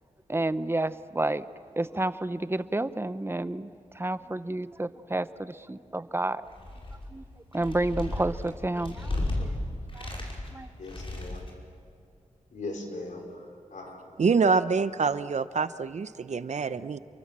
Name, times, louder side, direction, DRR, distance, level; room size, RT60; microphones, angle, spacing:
voice 1, 0.3-1.4 1.8-6.5 7.1-7.2 7.5-9.5 9.9-10.2 10.5-10.7, right 2 dB, 20° right, 13 dB, 0.8 m, -30 dB
sound 1, 6.5-7.1 7.5-9.5 9.9-10.5 10.8-11.5, left 2 dB, 45° left, 5.7 m, -34 dB
voice 2, 10.8-11.4 12.5-14.1 14.4-14.5 16.5-16.8, left 2 dB, 90° left, 2 dB, 4.6 m, -40 dB
voice 3, 14.2-17.0, right 5 dB, 65° right, 13 dB, 0.8 m, -26 dB
29.0 x 24.0 x 7.5 m, 2.4 s
wide cardioid pair, 80°, 13 cm